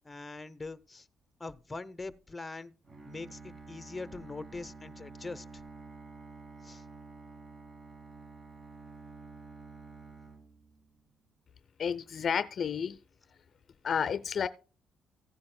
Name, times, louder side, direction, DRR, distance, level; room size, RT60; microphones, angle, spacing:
voice 1, 0.0-1.1 1.4-2.7 3.1-5.4 6.6-6.8, left 3 dB, 20° left, 0.8 m, -42 dB
Bowed string instrument, 2.8-11.1, right 3 dB, 35° right, 1.2 m, -50 dB
voice 2, 11.8-13.0 13.8-14.5, left 7 dB, 55° left, 0.5 m, -31 dB
16.0 x 9.6 x 2.2 m
cardioid pair, 90°, 0 cm